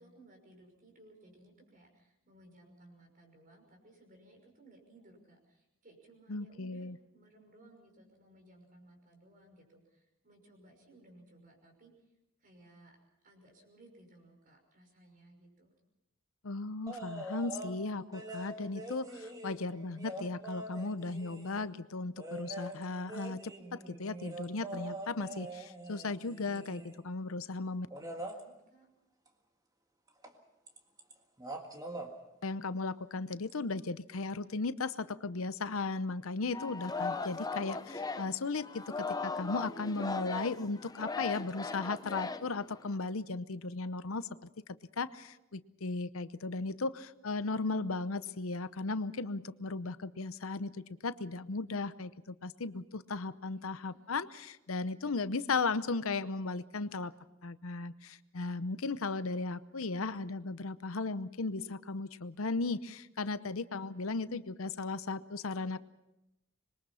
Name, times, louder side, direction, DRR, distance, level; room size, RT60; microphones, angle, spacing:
voice 1, 0.0-12.1 12.4-13.0 13.2-15.7 27.9-28.9 53.5-54.2 63.2-64.1, right 1 dB, 40° right, 3 dB, 5.8 m, -60 dB
voice 2, 6.3-7.0 16.4-27.9 32.4-44.3 45.0-57.1 57.4-65.8, left 3 dB, 80° left, 14 dB, 0.8 m, -36 dB
sound 1, 16.9-17.8 18.1-21.7 22.2-27.0 27.9-28.4 30.2-30.4 30.7-31.1 31.4-32.1 33.5-33.6, right 1 dB, 20° right, 1.9 m, -44 dB
Singing, 36.5-43.0, left 4 dB, 20° left, 0.7 m, -38 dB
26.0 x 22.0 x 5.7 m, 0.89 s
head